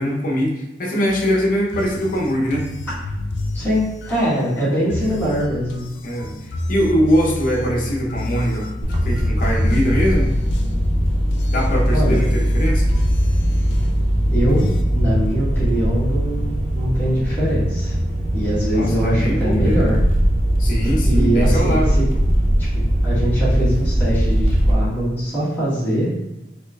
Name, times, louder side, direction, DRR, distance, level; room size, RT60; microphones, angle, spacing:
voice 1, 0.0-2.7 6.0-10.3 11.5-12.9 18.7-19.9 20.6-22.0, equal, 50° left, -1 dB, 0.6 m, -22 dB
sound 1, 1.1-14.8, left 1 dB, 90° left, 0.3 m, -29 dB
voice 2, 3.5-5.9 11.9-12.2 14.2-17.9 18.3-20.0 21.0-22.0 23.0-26.1, equal, 15° left, -11 dB, 1.5 m, -22 dB
sound 2, 8.8-24.7, equal, 35° right, 0.5 m, -19 dB
4.2 x 2.4 x 2.2 m, 0.95 s
head